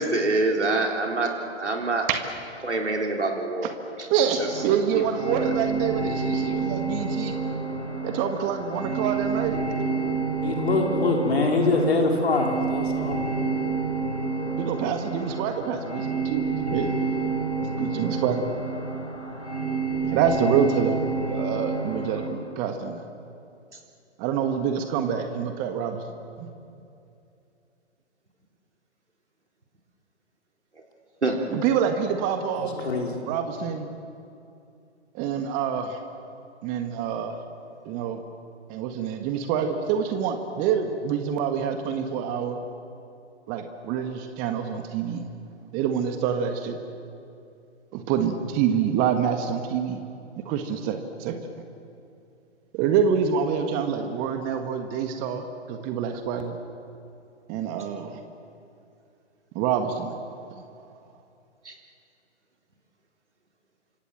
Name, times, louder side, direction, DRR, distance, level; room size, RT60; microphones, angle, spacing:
voice 1, 0.0-2.1 2.6-3.7 4.0-4.1 4.4-4.5 4.9-5.0 5.3-5.5 31.2-31.4 61.6-61.7, right 2 dB, 80° right, 1 dB, 3.9 m, -26 dB
sound 1, 4.4-22.3, right 4 dB, 90° left, 6.8 m, -29 dB
voice 2, 4.6-7.4 8.0-10.2 14.6-17.1 17.8-18.5 20.0-21.0 21.3-23.0 24.2-26.1 26.4-26.5 31.5-33.0 33.2-33.9 35.1-36.0 36.6-37.4 37.8-38.2 38.7-42.6 43.5-45.3 45.7-46.8 47.9-50.0 50.5-51.4 52.7-56.6 57.5-58.2 59.5-60.2 60.5-60.6, right 7 dB, 25° right, 6 dB, 1.7 m, -26 dB
voice 3, 10.4-13.2 32.8-33.1, left 3 dB, 60° left, 1 dB, 4.8 m, -23 dB
28.5 x 26.5 x 7.5 m, 2.6 s
figure-of-eight pair, 125°, 34 cm